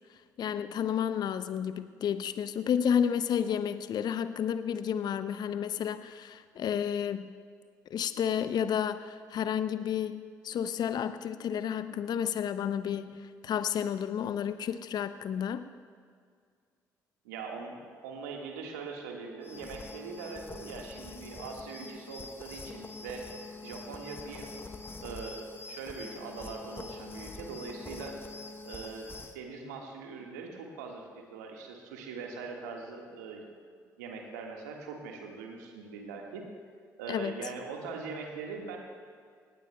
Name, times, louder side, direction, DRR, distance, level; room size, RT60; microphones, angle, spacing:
voice 1, 0.4-7.3 7.9-15.6 37.1-37.3, left 8 dB, 50° left, 12 dB, 0.5 m, -31 dB
voice 2, 17.2-23.3 23.6-24.7 25.0-25.4 25.7-28.2 28.6-33.4 34.0-36.5 37.0-38.8, right 4 dB, 80° right, 1 dB, 1.5 m, -42 dB
sound 1, 19.4-29.4, left 3 dB, 25° left, 1.0 m, -44 dB
18.0 x 18.0 x 2.2 m, 2.1 s
hypercardioid pair, 45°, 9 cm